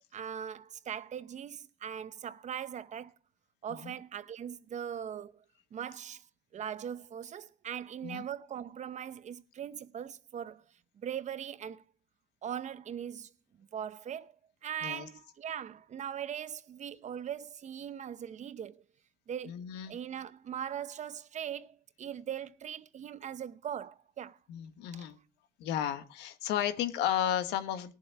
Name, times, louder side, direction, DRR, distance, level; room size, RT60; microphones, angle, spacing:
voice 1, 0.1-3.1 3.6-5.3 5.7-6.2 6.5-10.6 11.0-11.8 12.4-13.3 13.7-14.3 14.6-18.8 19.3-19.6 19.9-24.4 24.9-25.1, right 9 dB, 45° right, 0.8 m, -40 dB
voice 2, 19.5-20.0 24.5-25.2 25.6-27.9, left 10 dB, 90° left, 1.4 m, -33 dB
18.5 x 7.4 x 4.6 m
cardioid pair, 110°, 17 cm